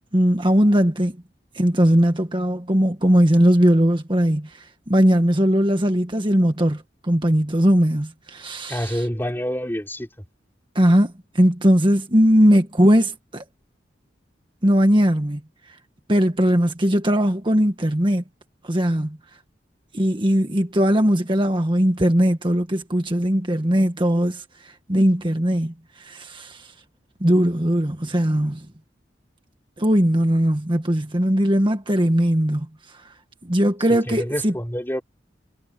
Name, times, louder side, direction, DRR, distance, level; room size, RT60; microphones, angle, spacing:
voice 1, 0.1-1.2 1.5-9.0 10.7-13.4 14.6-15.4 16.1-18.2 18.6-19.2 19.9-26.7 27.2-28.7 29.8-33.1 33.4-34.5, equal, 25° right, 1.7 m, -19 dB
voice 2, 8.7-10.1 34.1-35.0, equal, 15° left, 3.4 m, -27 dB
head